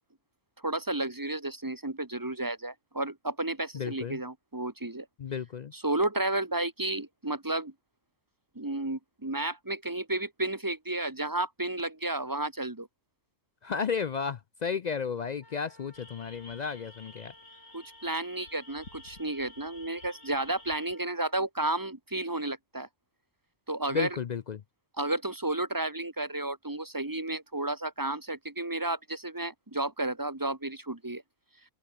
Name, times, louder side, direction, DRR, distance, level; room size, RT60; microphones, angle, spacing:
voice 1, 0.6-5.1 5.7-7.7 8.5-12.9 17.7-22.9 23.7-24.2 25.0-31.2, right 2 dB, 15° right, 1.5 m, -32 dB
voice 2, 3.7-4.2 5.2-5.7 13.6-17.3 23.9-24.6, left 6 dB, 60° left, 0.4 m, -33 dB
Wind instrument woodwind instrument, 15.4-21.5, left 1 dB, 15° left, 4.3 m, -59 dB
sound 1, 15.9-20.9, left 2 dB, 90° left, 5.8 m, -52 dB
omnidirectional pair, 1.4 m